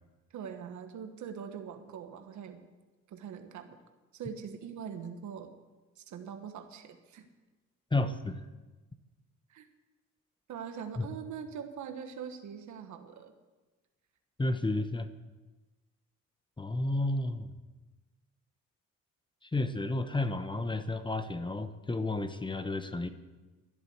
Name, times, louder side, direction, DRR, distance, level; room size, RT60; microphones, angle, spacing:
voice 1, 0.3-2.6 3.1-3.8 4.1-5.5 6.0-7.3 9.5-9.7 10.5-13.3, right 7 dB, 75° right, 6 dB, 1.4 m, -42 dB
voice 2, 7.9-8.4 11.0-11.1 14.4-15.1 16.6-17.5 19.4-23.1, left 2 dB, 15° left, 10 dB, 1.0 m, -31 dB
12.5 x 10.5 x 8.0 m, 1.2 s
cardioid pair, 90°, 30 cm